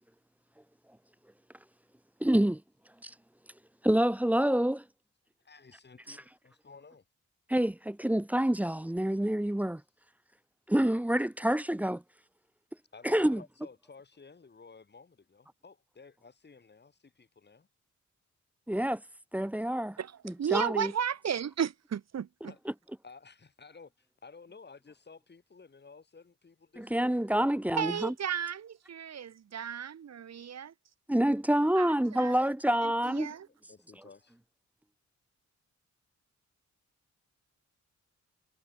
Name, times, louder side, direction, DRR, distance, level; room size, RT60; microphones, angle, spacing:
voice 1, 2.2-2.6 3.0-3.1 3.8-4.8 6.1-6.2 7.5-9.8 10.7-12.0 13.0-13.4 18.7-19.0 19.3-20.0 20.2-20.9 26.8-28.1 31.1-33.3, right 1 dB, 5° right, 0.4 m, -27 dB
voice 2, 5.4-7.0 12.9-17.7 22.5-22.6 23.0-27.3 33.7-34.4, left 4 dB, 35° left, 6.5 m, -54 dB
voice 3, 20.0-22.5 27.8-30.7 31.8-32.4 32.8-33.5, right 8 dB, 60° right, 1.8 m, -34 dB
wide cardioid pair, 130°, 30 cm